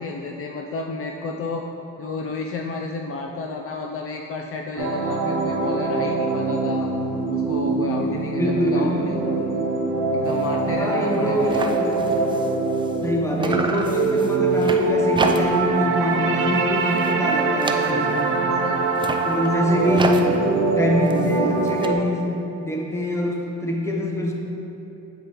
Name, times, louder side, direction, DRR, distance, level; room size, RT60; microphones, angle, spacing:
voice 1, 0.0-1.7 2.0-6.9 7.3-9.7 10.1-11.8 17.9-19.0, left 3 dB, 45° left, 2 dB, 0.4 m, -31 dB
sound 1, 4.8-21.9, right 3 dB, 85° right, 0.7 m, -23 dB
voice 2, 8.4-9.1 10.7-12.0 13.0-18.3 19.3-20.4 20.8-24.3, left 1 dB, 10° left, -1 dB, 0.9 m, -24 dB
sound 2, 10.3-10.5 10.8-10.9 11.1-13.1 13.4-15.8 16.1-16.5 16.8-18.3 18.8-21.9, right 3 dB, 15° right, 0.3 m, -31 dB
7.9 x 5.0 x 3.0 m, 3.0 s
cardioid pair, 95°, 31 cm